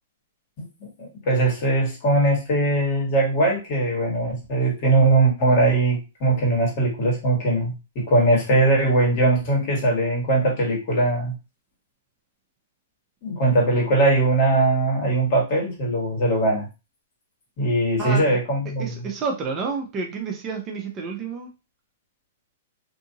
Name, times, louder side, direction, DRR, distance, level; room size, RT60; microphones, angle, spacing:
voice 1, 1.0-11.3 13.2-16.7 17.6-19.1, right 2 dB, 45° left, -1 dB, 1.6 m, -21 dB
voice 2, 18.0-18.4 18.6-21.5, right 4 dB, 25° right, 1 dB, 0.6 m, -30 dB
2.7 x 2.6 x 2.7 m, 0.29 s
hypercardioid pair, 140°, 0 cm